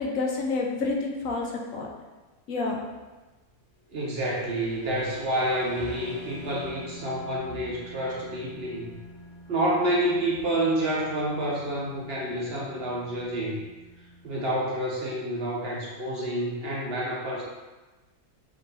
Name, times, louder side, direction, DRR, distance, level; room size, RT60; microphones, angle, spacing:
voice 1, 0.0-1.9 2.5-2.8, left 3 dB, 70° left, -1 dB, 0.9 m, -29 dB
sound 1, 3.8-14.5, left 1 dB, 55° left, 1.5 m, -46 dB
voice 2, 3.9-9.0 9.5-13.6 14.2-17.4, right 1 dB, 55° right, -4 dB, 0.7 m, -28 dB
6.1 x 2.6 x 2.7 m, 1.2 s
omnidirectional pair, 1.6 m